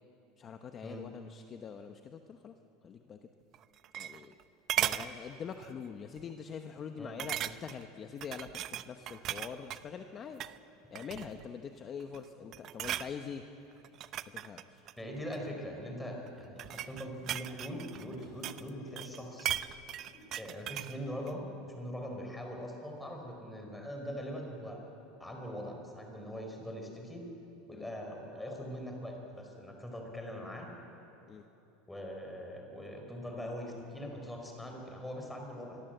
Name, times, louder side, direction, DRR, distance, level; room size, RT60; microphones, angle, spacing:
voice 1, 0.4-2.5 2.8-3.3 4.0-4.4 4.8-10.4 10.9-13.4 14.3-14.9 27.7-27.9 31.3-31.4, left 6 dB, 30° left, 6 dB, 1.0 m, -44 dB
sound 1, 3.5-4.4 4.7-5.1 5.6-5.8 6.2-6.3 7.2-7.8 8.2-9.8 10.3-10.6 10.9-11.5 12.0-12.3 12.5-13.1 13.8-15.5 16.3-18.7 19.0-21.0 21.3-21.4, right 11 dB, 40° right, 0.7 m, -37 dB
voice 2, 15.0-19.5 20.4-24.8 25.2-27.2 27.7-30.7 31.9-35.8, equal, 5° left, 1 dB, 4.6 m, -42 dB
sound 2, 16.6-17.4 17.7-19.1 19.7-20.4 21.1-21.5, left 2 dB, 45° left, 7.3 m, -63 dB
25.5 x 22.5 x 8.0 m, 2.9 s
supercardioid pair, 145°, 0 cm